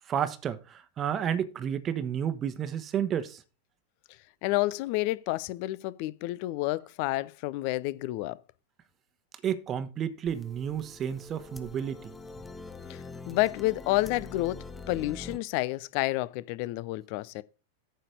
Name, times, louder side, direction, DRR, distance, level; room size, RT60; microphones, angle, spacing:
voice 1, 0.1-3.4 9.4-12.1, right 9 dB, 25° right, 1.1 m, -31 dB
voice 2, 4.4-8.4 12.9-17.4, left 18 dB, 45° left, 0.6 m, -30 dB
sound 1, 10.3-15.4, left 3 dB, 10° left, 1.0 m, -44 dB
9.2 x 4.1 x 6.7 m
figure-of-eight pair, 90°, 0 cm